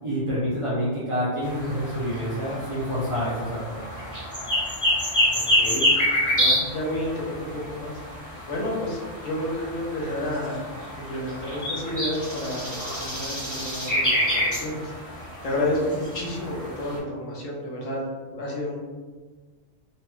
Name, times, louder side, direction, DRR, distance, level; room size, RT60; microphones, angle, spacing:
voice 1, 0.0-3.9, equal, 45° right, -9 dB, 0.4 m, -27 dB
sound 1, 1.4-17.0, left 1 dB, 15° left, 1.2 m, -28 dB
voice 2, 5.3-6.0 6.3-8.2 8.5-10.7 11.0-18.0 18.3-18.8, left 1 dB, 65° left, -4 dB, 1.1 m, -31 dB
3.1 x 2.3 x 3.0 m, 1.4 s
omnidirectional pair, 1.4 m